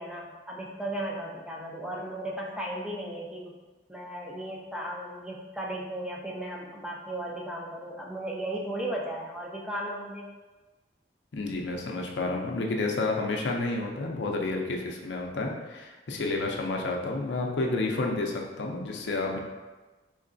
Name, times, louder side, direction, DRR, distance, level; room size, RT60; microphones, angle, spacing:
voice 1, 0.0-3.5 3.9-10.3, right 1 dB, 5° right, -2 dB, 0.4 m, -35 dB
voice 2, 11.3-19.4, left 2 dB, 75° left, 1 dB, 0.5 m, -30 dB
3.6 x 3.2 x 2.6 m, 1.2 s
head